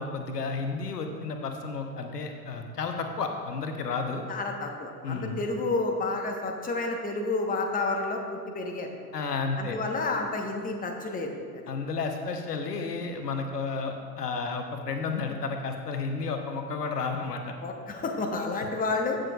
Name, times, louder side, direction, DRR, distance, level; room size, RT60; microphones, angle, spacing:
voice 1, 0.0-4.2 5.0-5.4 9.1-9.8 11.7-17.5, left 4 dB, 80° left, 5 dB, 0.9 m, -32 dB
voice 2, 4.3-8.9 9.6-11.6 17.6-19.2, left 3 dB, 20° left, 2 dB, 1.1 m, -30 dB
15.0 x 6.4 x 2.4 m, 2.3 s
figure-of-eight pair, 80°, 46 cm